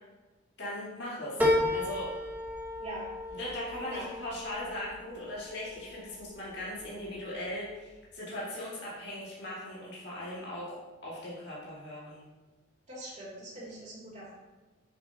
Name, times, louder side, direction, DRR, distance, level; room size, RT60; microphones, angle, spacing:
voice 1, 0.6-1.4 1.7-2.1 3.3-12.2, left 1 dB, 55° left, -7 dB, 2.2 m, -39 dB
sound 1, 1.4-6.2 6.6-7.3 7.7-7.8, left 1 dB, 10° right, 1.0 m, -33 dB
voice 2, 12.9-14.3, right 2 dB, 35° right, -6 dB, 2.8 m, -42 dB
9.3 x 6.7 x 2.9 m, 1.2 s
head